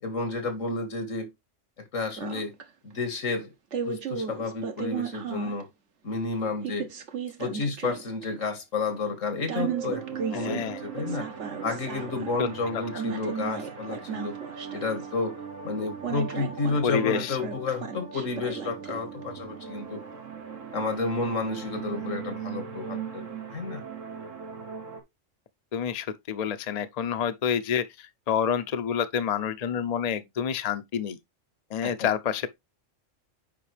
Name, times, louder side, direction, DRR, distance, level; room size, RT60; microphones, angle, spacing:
voice 1, 0.0-1.3 1.9-2.5 2.8-3.5 3.9-5.7 6.0-6.9 7.4-11.3 11.6-14.4 14.7-20.0 20.7-23.8 31.8-32.1, left 3 dB, 85° left, 2.2 m, -31 dB
sound 1, 2.2-2.6 3.7-5.6 6.6-8.2 9.5-12.3 12.9-15.1 16.0-19.2, right 6 dB, 65° right, 1.4 m, -35 dB
sound 2, 9.6-25.0, right 7 dB, 85° right, 1.9 m, -39 dB
voice 2, 10.3-10.8 12.4-12.5 12.7-12.8 16.8-17.4 25.7-31.2 31.7-32.5, left 8 dB, 40° left, 0.6 m, -28 dB
8.5 x 5.2 x 3.3 m
omnidirectional pair, 1.3 m